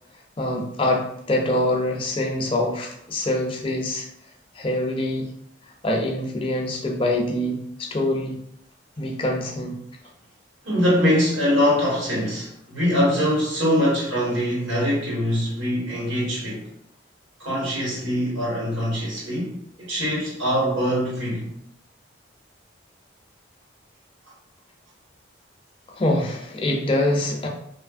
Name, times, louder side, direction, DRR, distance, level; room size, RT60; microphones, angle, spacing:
voice 1, 0.4-4.1 4.5-5.3 5.8-8.4 9.0-9.8 26.0-27.5, left 1 dB, 30° left, 1 dB, 0.4 m, -24 dB
voice 2, 10.6-16.6 17.4-21.5, equal, 85° right, -6 dB, 1.3 m, -23 dB
2.8 x 2.4 x 2.4 m, 0.71 s
head